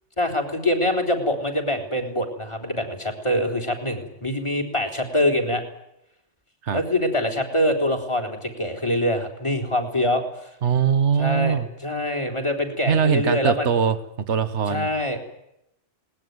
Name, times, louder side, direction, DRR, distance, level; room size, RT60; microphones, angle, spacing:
voice 1, 0.2-5.6 6.7-10.2 11.2-13.7 14.7-15.2, left 1 dB, 25° left, 3 dB, 3.7 m, -24 dB
voice 2, 10.6-11.7 12.9-14.0 14.3-14.9, right 7 dB, 75° right, 12 dB, 1.5 m, -21 dB
21.0 x 19.5 x 9.5 m, 0.82 s
omnidirectional pair, 1.2 m